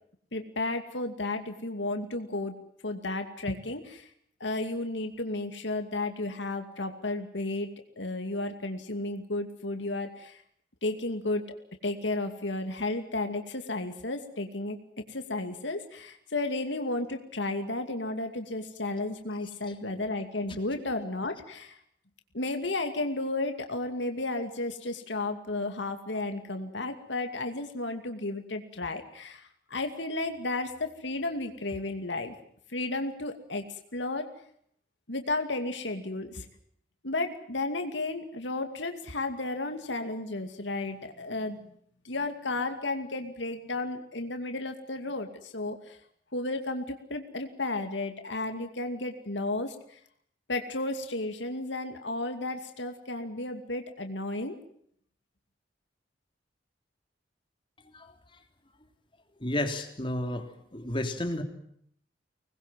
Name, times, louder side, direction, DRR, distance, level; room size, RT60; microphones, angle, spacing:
voice 1, 0.3-2.5 2.8-4.1 4.4-7.7 8.0-10.4 10.8-11.4 11.8-14.8 15.1-21.8 22.3-32.3 32.7-33.7 33.9-34.3 35.1-36.5 37.0-41.6 42.0-46.0 46.3-49.8 50.5-54.6, left 2 dB, 80° left, 6 dB, 2.5 m, -33 dB
voice 2, 59.4-60.5 60.7-61.4, left 1 dB, 30° left, 6 dB, 3.2 m, -31 dB
25.5 x 20.5 x 7.6 m, 0.68 s
head